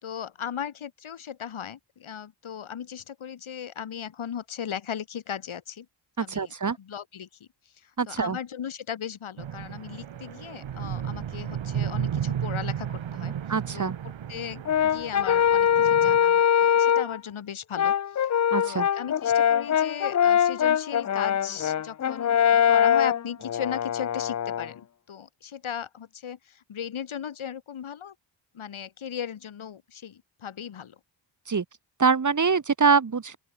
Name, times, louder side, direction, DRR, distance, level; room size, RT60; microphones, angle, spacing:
voice 1, 0.0-5.9 6.2-7.3 7.8-13.3 13.7-17.9 18.2-18.3 18.6-28.1 28.5-31.0, left 8 dB, 85° left, 5.7 m, -37 dB
voice 2, 6.2-6.8 8.0-8.4 13.5-14.0 18.5-18.9 31.5-31.6 32.0-33.4, right 5 dB, 40° right, 1.9 m, -24 dB
sound 1, 9.4-16.2, right 9 dB, 70° right, 1.9 m, -33 dB
Brass instrument, 14.6-17.2 17.7-24.7, left 9 dB, 40° left, 0.5 m, -22 dB
open air
wide cardioid pair, 100°, 47 cm